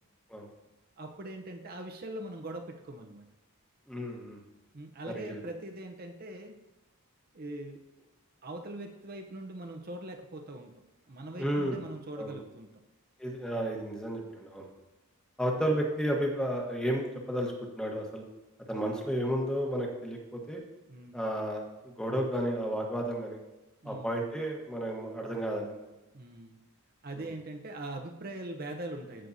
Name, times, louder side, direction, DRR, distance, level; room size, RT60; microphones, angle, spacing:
voice 1, 1.0-3.2 4.7-6.6 7.3-7.8 8.4-10.7 11.1-12.7 18.7-19.0 20.9-21.2 23.8-24.2 26.1-26.6 27.0-29.3, right 1 dB, 45° right, 3 dB, 0.8 m, -42 dB
voice 2, 3.9-4.4 5.1-5.4 11.4-11.8 12.2-12.4 13.2-14.7 15.4-18.2 18.7-20.6 21.1-23.4 23.8-25.8 27.2-27.3, equal, 5° left, 0 dB, 1.2 m, -32 dB
15.5 x 6.4 x 2.7 m, 1.0 s
head